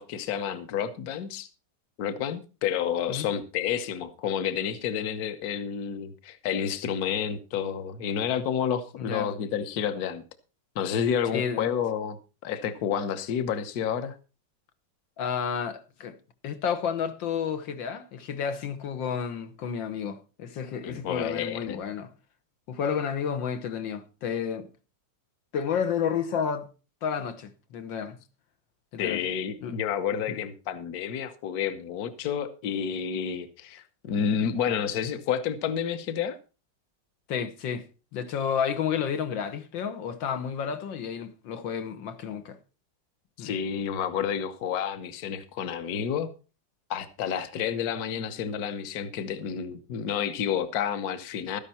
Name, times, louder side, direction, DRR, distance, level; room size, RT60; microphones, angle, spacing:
voice 1, 0.0-1.5 2.0-10.2 10.7-14.2 20.8-21.8 29.0-36.4 43.4-46.3 46.9-51.6, left 8 dB, 60° left, 1.4 m, -30 dB
voice 2, 9.0-9.3 11.3-11.7 15.2-16.2 16.4-22.1 22.7-24.7 25.5-26.7 27.0-28.2 28.9-29.2 29.6-29.8 30.3-30.4 37.3-37.9 38.1-42.6 43.4-43.5, left 7 dB, 90° left, 1.9 m, -31 dB
13.0 x 10.5 x 4.3 m
omnidirectional pair, 2.0 m